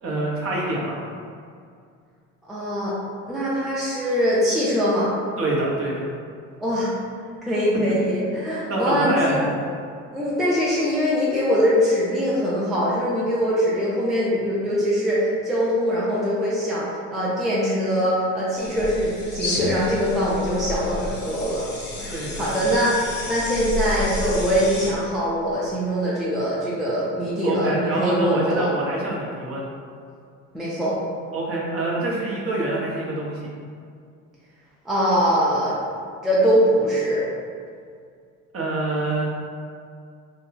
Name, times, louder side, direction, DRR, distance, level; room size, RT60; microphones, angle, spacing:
voice 1, 0.0-1.0 5.4-6.1 8.7-9.5 21.9-22.5 27.4-29.7 31.3-33.5 38.5-39.3, right 2 dB, 35° right, -4 dB, 0.8 m, -26 dB
voice 2, 2.5-3.0 3.3-5.1 6.6-6.9 7.4-9.4 10.1-21.7 22.0-28.7 30.5-30.9 34.8-35.8 36.2-37.2, equal, ahead, -8 dB, 0.4 m, -22 dB
sound 1, 18.6-24.9, left 2 dB, 25° left, 0.7 m, -30 dB
2.3 x 2.2 x 3.0 m, 2.2 s
hypercardioid pair, 65°, 40 cm